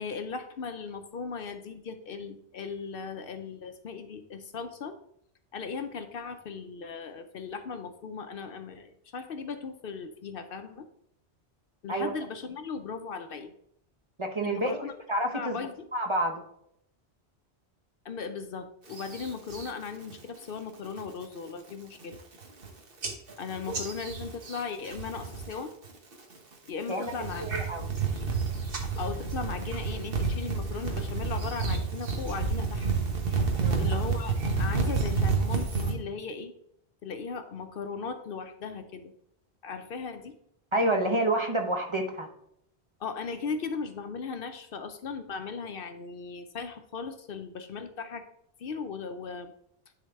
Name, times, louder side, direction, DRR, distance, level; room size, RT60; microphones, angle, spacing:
voice 1, 0.0-5.0 5.5-10.9 11.8-13.5 14.4-14.9 15.3-15.9 18.0-22.2 23.4-25.7 26.7-27.5 29.0-32.9 33.8-36.5 37.0-39.1 39.6-40.3 43.0-48.3 48.6-49.5, left 5 dB, 60° left, 8 dB, 0.7 m, -37 dB
voice 2, 14.2-14.8 15.1-15.6 15.9-16.4 26.9-27.1 27.4-27.9 33.6-33.9 40.7-42.3, right 1 dB, 30° right, 2 dB, 0.7 m, -28 dB
sound 1, 18.9-19.7 20.1-20.5 20.9-21.2 21.7-21.8 22.0-22.7 23.0-25.6 25.8-26.4 26.9-35.9, right 4 dB, 55° right, 1.3 m, -30 dB
10.0 x 3.9 x 3.4 m, 0.74 s
omnidirectional pair, 1.1 m